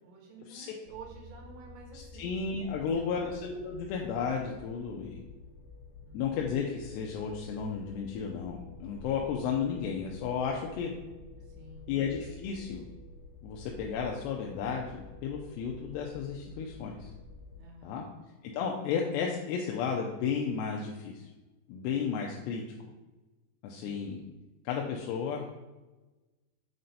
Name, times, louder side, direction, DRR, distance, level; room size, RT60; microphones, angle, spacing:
voice 1, 0.0-2.5 2.8-3.3 6.0-6.3 11.4-12.2 17.5-18.2 23.7-24.1, right 3 dB, 75° right, 2 dB, 3.0 m, -51 dB
sound 1, 0.8-17.6, left 2 dB, 65° left, 2.1 m, -50 dB
voice 2, 1.9-5.2 6.1-10.9 11.9-12.9 13.4-17.1 17.8-18.0 18.4-21.3 21.7-22.6 23.6-24.2 24.6-25.5, left 6 dB, 80° left, 0 dB, 2.6 m, -33 dB
7.9 x 4.3 x 4.1 m, 1.2 s
omnidirectional pair, 5.2 m